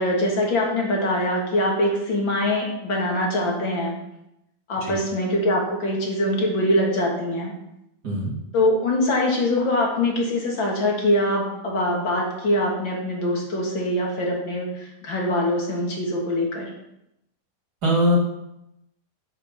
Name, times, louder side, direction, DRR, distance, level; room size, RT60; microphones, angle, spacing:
voice 1, 0.0-4.0 4.7-7.5 8.5-16.7, left 1 dB, 30° left, -1 dB, 2.4 m, -23 dB
voice 2, 17.8-18.2, equal, 25° right, -4 dB, 2.3 m, -21 dB
12.0 x 8.1 x 5.7 m, 0.84 s
omnidirectional pair, 5.6 m